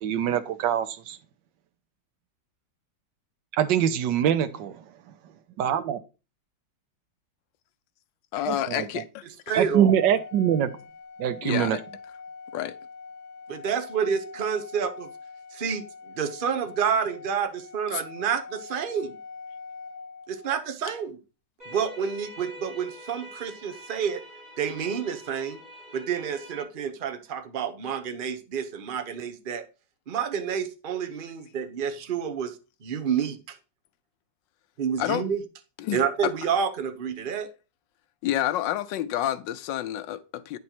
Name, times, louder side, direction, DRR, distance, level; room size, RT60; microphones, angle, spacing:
voice 1, 0.0-1.2 3.5-4.8 5.6-6.0 8.5-9.0 9.6-10.7 11.2-11.8, right 9 dB, 85° right, 1.5 m, -24 dB
voice 2, 8.3-9.6 11.4-11.8 12.5-12.7 17.9-18.0 35.0-35.3 35.8-36.3 38.2-40.6, left 12 dB, 85° left, 1.3 m, -29 dB
voice 3, 9.5-9.9 13.5-15.1 15.5-19.1 20.3-21.2 21.7-24.2 24.6-25.6 25.9-29.6 30.1-32.5 32.8-33.6 34.8-35.4 35.9-37.5, right 7 dB, 40° right, 0.8 m, -29 dB
Organ, 9.8-20.7, left 4 dB, 35° left, 0.7 m, -44 dB
sound 1, 21.6-26.6, equal, 25° right, 6.0 m, -45 dB
9.5 x 5.3 x 4.4 m
omnidirectional pair, 1.9 m